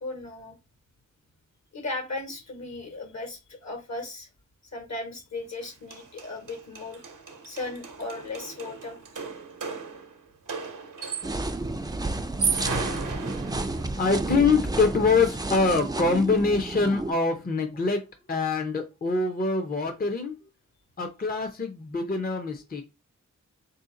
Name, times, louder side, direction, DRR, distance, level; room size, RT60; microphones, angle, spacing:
voice 1, 0.0-0.6 1.7-4.3 4.7-7.0 7.4-9.0, left 2 dB, 60° left, 1.4 m, -36 dB
sound 1, 5.6-5.7 5.9-11.5 12.2-14.0, right 5 dB, 85° right, 0.8 m, -34 dB
sound 2, 11.2-17.1, right 2 dB, 15° right, 0.4 m, -31 dB
voice 2, 13.9-18.0 18.3-20.3 21.0-22.8, left 4 dB, 30° left, 0.6 m, -24 dB
3.5 x 2.7 x 3.7 m
cardioid pair, 55°, 31 cm